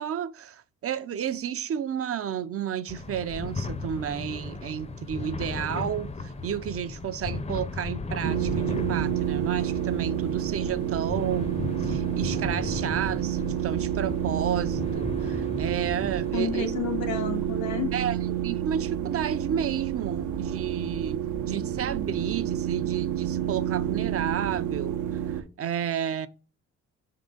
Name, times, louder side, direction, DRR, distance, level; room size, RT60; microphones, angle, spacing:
voice 1, 0.0-16.8 17.9-26.3, right 8 dB, 50° right, 0.5 m, -32 dB
sound 1, 2.9-16.3, left 3 dB, 20° left, 0.5 m, -36 dB
sound 2, 8.2-25.4, right 10 dB, 75° right, 0.8 m, -29 dB
voice 2, 16.3-17.9, left 6 dB, 90° left, 1.5 m, -30 dB
6.7 x 3.8 x 3.8 m
cardioid pair, 90°, 30 cm